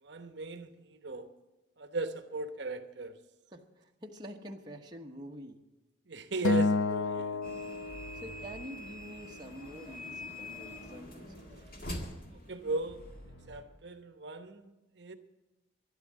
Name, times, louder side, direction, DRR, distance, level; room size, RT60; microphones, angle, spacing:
voice 1, 0.0-1.3 1.8-3.2 6.1-7.4 11.9-12.0 12.5-15.1, right 3 dB, 60° right, 8 dB, 1.0 m, -38 dB
voice 2, 3.5-5.6 8.1-11.5, equal, 20° right, 1 dB, 1.1 m, -47 dB
Acoustic guitar, 6.4-8.8, left 4 dB, 90° left, 0.5 m, -31 dB
sound 1, 7.4-13.3, left 1 dB, 45° left, 1.9 m, -45 dB
sound 2, 7.9-9.6 12.9-13.8, equal, 70° left, 2.5 m, -52 dB
12.5 x 11.5 x 7.4 m, 1.1 s
head